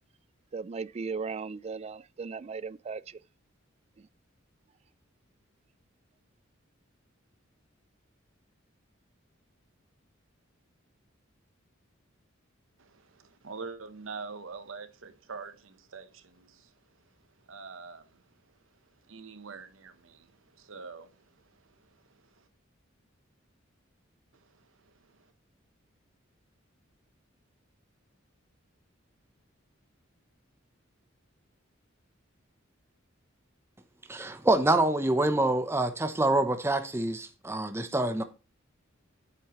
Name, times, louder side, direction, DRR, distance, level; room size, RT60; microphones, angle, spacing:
voice 1, 0.5-3.2, right 5 dB, 30° right, 0.3 m, -37 dB
voice 2, 12.8-16.7 17.5-18.2 19.1-21.2 21.5-21.6 22.1-22.4 24.4-25.2, right 4 dB, 75° right, 0.9 m, -45 dB
voice 3, 34.1-38.2, right 2 dB, 15° right, 0.7 m, -26 dB
8.5 x 7.7 x 3.0 m
head